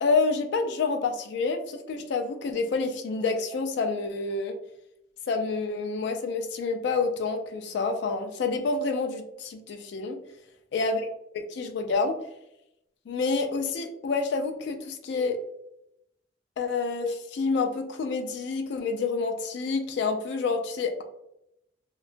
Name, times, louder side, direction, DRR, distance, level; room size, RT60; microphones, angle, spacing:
voice 1, 0.0-4.6 5.3-10.2 10.7-11.0 11.3-12.2 13.1-15.4 16.6-21.0, left 4 dB, 65° left, 5 dB, 0.3 m, -28 dB
2.8 x 2.2 x 2.5 m, 0.82 s
head